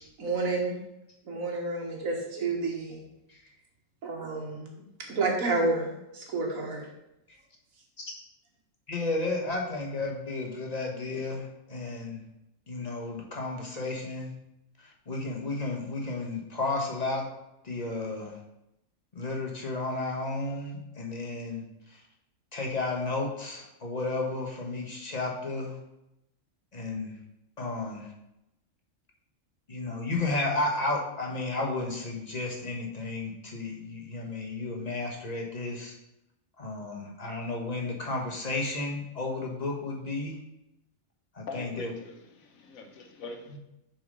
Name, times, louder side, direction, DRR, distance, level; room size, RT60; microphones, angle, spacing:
voice 1, 0.2-0.8 1.2-3.0 4.0-4.8 5.1-6.9, right 3 dB, 80° right, 1 dB, 1.9 m, -30 dB
voice 2, 8.9-11.4 11.7-12.2 12.7-14.3 15.1-17.2 17.6-18.3 19.2-21.6 22.5-25.7 26.7-27.1 27.6-28.1 29.7-35.9 36.6-40.4 41.4-41.9, left 2 dB, 30° left, 0 dB, 1.3 m, -32 dB
voice 3, 41.5-42.2 42.5-43.6, left 3 dB, 90° left, 4 dB, 1.4 m, -42 dB
6.7 x 4.3 x 5.2 m, 0.85 s
omnidirectional pair, 1.4 m